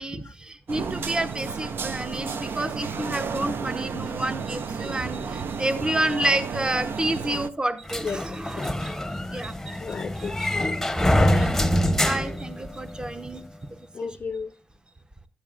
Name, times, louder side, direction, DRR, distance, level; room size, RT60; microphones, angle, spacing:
voice 1, 0.0-8.9 9.3-9.5 11.3-11.6 11.9-13.4 14.0-14.1, right 1 dB, 25° right, 0.9 m, -29 dB
sound 1, 0.7-7.5, right 5 dB, 80° right, 0.5 m, -32 dB
sound 2, 7.9-13.2, left 1 dB, 5° left, 0.8 m, -25 dB
voice 2, 8.0-8.8 9.8-10.8 11.2-11.6 13.9-14.5, left 5 dB, 60° left, 0.4 m, -34 dB
13.5 x 8.7 x 2.5 m
cardioid pair, 60°, 4 cm